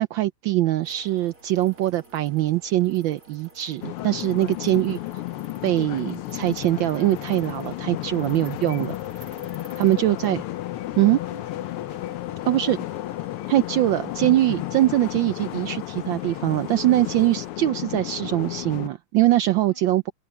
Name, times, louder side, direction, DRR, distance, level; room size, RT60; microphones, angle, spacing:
voice 1, 0.0-5.0 5.6-8.9 9.8-10.4 11.0-11.2 12.5-12.8 13.5-20.1, right 15 dB, 75° right, 1.2 m, -22 dB
sound 1, 0.8-17.5, right 2 dB, 40° right, 2.5 m, -50 dB
sound 2, 3.8-18.9, left 16 dB, 85° left, 1.6 m, -33 dB
voice 2, 9.6-10.3 11.2-13.1 19.7-19.9, left 1 dB, 55° left, 8.9 m, -53 dB
omnidirectional pair, 2.4 m